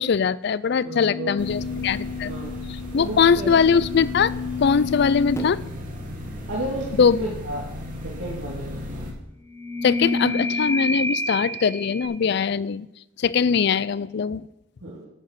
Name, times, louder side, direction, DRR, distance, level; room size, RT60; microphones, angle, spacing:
voice 1, 0.0-2.3 2.9-4.3 4.6-5.6 7.0-7.2 9.8-12.9 13.2-14.5, left 6 dB, 55° left, 19 dB, 0.4 m, -21 dB
sound 1, 0.8-5.6 9.5-12.1, left 3 dB, 15° left, 1.1 m, -30 dB
voice 2, 0.8-1.3 2.2-2.6 2.9-3.5 6.5-7.7 8.0-9.0 14.8-15.0, right 1 dB, 90° right, -5 dB, 2.5 m, -32 dB
sound 2, 1.4-9.1, left 1 dB, 40° right, 2.1 m, -35 dB
9.8 x 7.1 x 7.4 m, 0.86 s
head